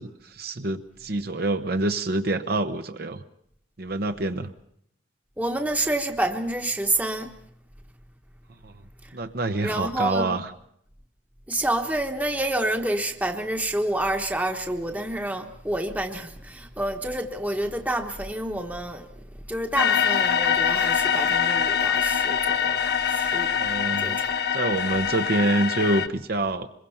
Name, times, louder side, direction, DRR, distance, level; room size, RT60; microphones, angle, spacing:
voice 1, 0.0-3.2 3.8-4.5 8.6-8.7 9.1-10.5 23.6-24.2 24.5-26.7, right 2 dB, 55° right, 1.0 m, -26 dB
voice 2, 5.4-7.3 9.0-9.2 9.6-10.4 11.5-19.1 19.5-24.3, right 1 dB, 10° right, 1.2 m, -28 dB
sound 1, 19.8-26.1, left 7 dB, 60° left, 1.0 m, -24 dB
25.5 x 22.0 x 5.7 m
head